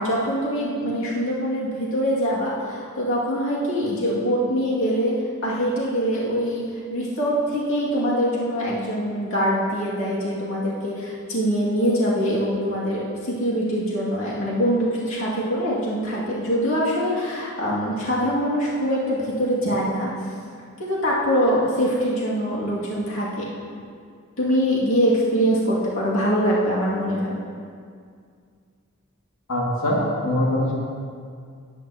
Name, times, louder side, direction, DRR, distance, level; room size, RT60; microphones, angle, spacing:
voice 1, 0.0-5.1 5.4-6.6 6.9-20.1 20.8-23.5 24.4-27.3, equal, 65° left, -7 dB, 2.4 m, -23 dB
voice 2, 29.5-30.7, left 1 dB, 85° left, -5 dB, 2.4 m, -22 dB
17.5 x 9.2 x 3.0 m, 2.2 s
head